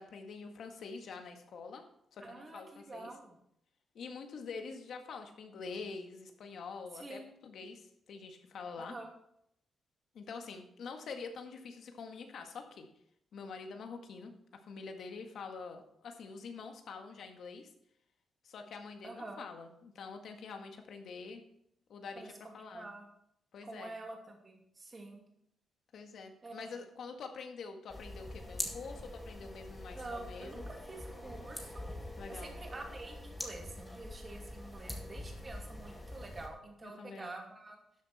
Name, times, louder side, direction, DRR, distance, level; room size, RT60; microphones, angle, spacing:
voice 1, 0.0-1.8 2.1-3.1 4.0-9.0 10.1-12.9 13.3-14.3 14.7-17.7 18.4-21.4 21.9-22.9 23.5-23.9 25.9-30.7 32.2-32.5 36.8-37.3, left 4 dB, 65° left, 5 dB, 1.7 m, -46 dB
voice 2, 2.2-3.4 6.9-7.2 8.8-9.1 19.0-19.4 22.2-23.1 23.6-25.2 26.4-26.7 29.9-31.8 32.3-37.8, right 2 dB, 25° right, 1 dB, 2.6 m, -47 dB
sound 1, 27.9-36.5, left 1 dB, 10° left, 1.9 m, -44 dB
12.5 x 7.7 x 4.3 m, 0.73 s
cardioid pair, 140°, 0 cm